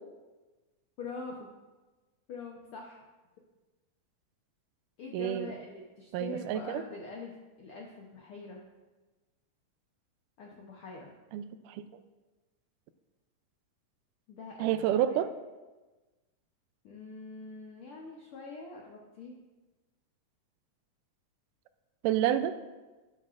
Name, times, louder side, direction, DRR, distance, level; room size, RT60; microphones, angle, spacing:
voice 1, 1.0-1.5 2.3-3.0 5.0-8.6 10.4-11.1 14.3-14.7 15.1-15.2 16.8-19.4, left 3 dB, 75° left, -1 dB, 1.2 m, -44 dB
voice 2, 5.1-5.5 6.1-6.8 11.3-11.8 14.6-15.3 22.0-22.5, right 11 dB, 85° right, 11 dB, 2.1 m, -29 dB
12.0 x 11.5 x 2.5 m, 1.2 s
omnidirectional pair, 3.7 m